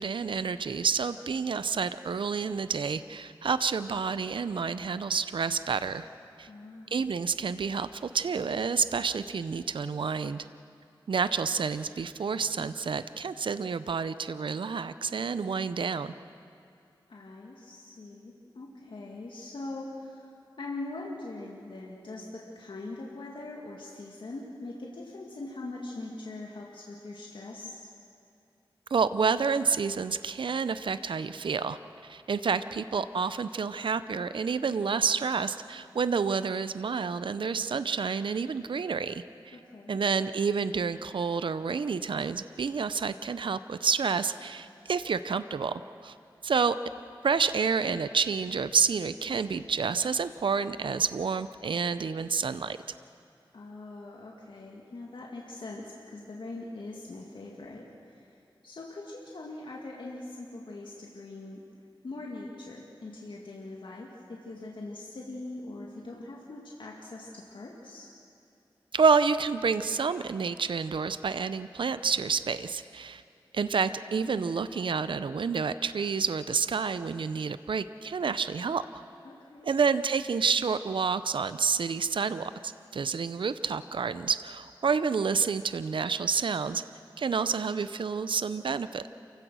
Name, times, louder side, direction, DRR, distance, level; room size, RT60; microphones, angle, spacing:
voice 1, 0.0-6.1 6.4-6.5 6.9-10.4 11.1-16.1 28.9-39.6 39.9-46.1 46.4-46.8 47.2-52.8 68.9-73.2 73.5-78.8 79.6-86.8 87.2-89.1, right 5 dB, 70° right, 13 dB, 0.6 m, -29 dB
voice 2, 6.5-7.1 17.1-27.9 39.5-40.0 53.5-58.4 58.6-61.6 62.0-68.1 79.2-79.7, left 2 dB, 70° left, -2 dB, 2.2 m, -42 dB
28.5 x 16.0 x 6.3 m, 2.5 s
cardioid pair, 55°, 9 cm